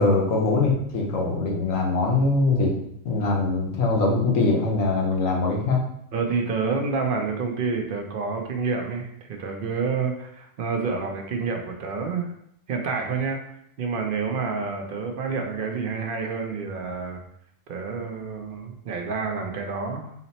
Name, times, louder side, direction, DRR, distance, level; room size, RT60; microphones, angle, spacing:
voice 1, 0.0-2.7 3.0-5.8, left 3 dB, 90° left, 0 dB, 1.2 m, -22 dB
voice 2, 6.1-12.3 12.7-13.4 13.8-17.2 17.7-20.2, right 4 dB, 60° right, 3 dB, 0.6 m, -28 dB
4.0 x 2.0 x 4.0 m, 0.73 s
omnidirectional pair, 1.3 m